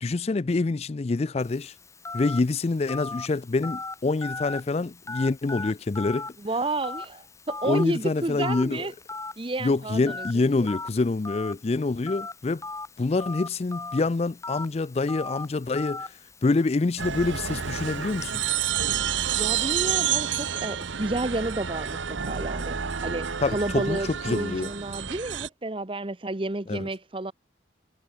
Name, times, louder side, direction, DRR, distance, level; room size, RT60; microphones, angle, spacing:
voice 1, 0.0-1.7 2.1-6.3 7.6-8.9 9.6-12.6 13.0-16.1 16.4-18.7 23.4-24.7 26.7-26.8, left 3 dB, 35° left, 0.4 m, -26 dB
Telephone, 1.4-18.4, left 3 dB, 15° left, 4.1 m, -39 dB
voice 2, 6.4-8.9 9.4-10.7 19.4-27.3, right 2 dB, 30° right, 0.9 m, -31 dB
sound 1, 17.0-25.5, right 8 dB, 90° right, 1.0 m, -29 dB
head